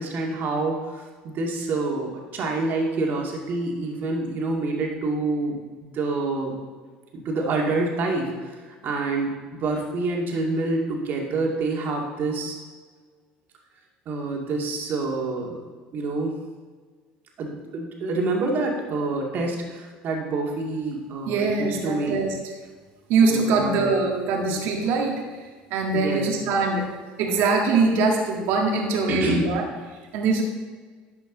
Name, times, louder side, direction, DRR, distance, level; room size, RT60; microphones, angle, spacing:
voice 1, 0.0-6.6 7.1-12.6 14.1-15.6 15.9-16.3 17.4-22.2 23.2-23.9 24.4-24.6 25.9-26.4 29.1-29.6, right 3 dB, 55° right, 0 dB, 2.2 m, -27 dB
voice 2, 21.3-22.3 23.1-25.2 25.7-26.9 27.2-29.6 30.1-30.4, right 4 dB, 70° right, 1 dB, 1.7 m, -22 dB
11.5 x 6.2 x 3.9 m, 1.5 s
supercardioid pair, 80°, 4 cm